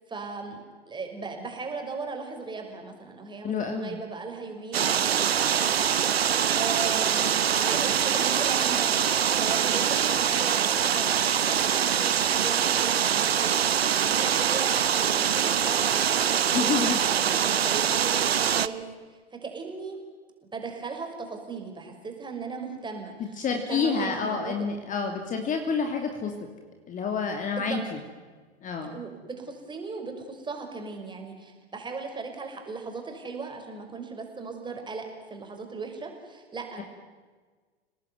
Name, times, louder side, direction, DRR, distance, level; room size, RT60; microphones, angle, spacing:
voice 1, 0.1-13.5 14.0-17.3 17.7-20.0 20.4-23.1 23.5-24.7 27.6-27.8 28.9-36.8, right 4 dB, 15° right, 3 dB, 5.7 m, -37 dB
voice 2, 3.4-4.0 16.5-17.0 23.2-26.3 26.9-28.0 28.6-29.0, left 5 dB, 25° left, 4 dB, 2.9 m, -28 dB
sound 1, 4.7-18.7, right 9 dB, 70° right, 1.0 m, -24 dB
30.0 x 18.5 x 9.5 m, 1.4 s
figure-of-eight pair, 95°, 32 cm